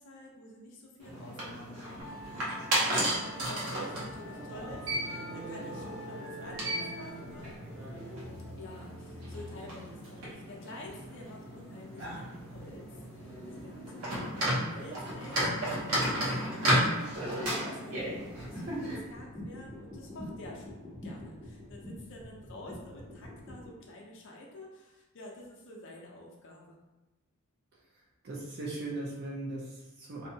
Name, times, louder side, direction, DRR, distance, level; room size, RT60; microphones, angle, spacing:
voice 1, 0.0-7.5 8.6-26.8, left 1 dB, 55° left, -1 dB, 0.5 m, -49 dB
sound 1, 1.0-19.0, equal, 80° right, 0.8 m, -34 dB
Musical instrument, 2.0-17.5, equal, 65° right, 1.2 m, -48 dB
sound 2, 18.1-23.7, left 1 dB, 15° right, 1.0 m, -45 dB
voice 2, 28.2-30.3, right 2 dB, 45° right, -4 dB, 0.5 m, -38 dB
2.7 x 2.2 x 2.6 m, 1.0 s
head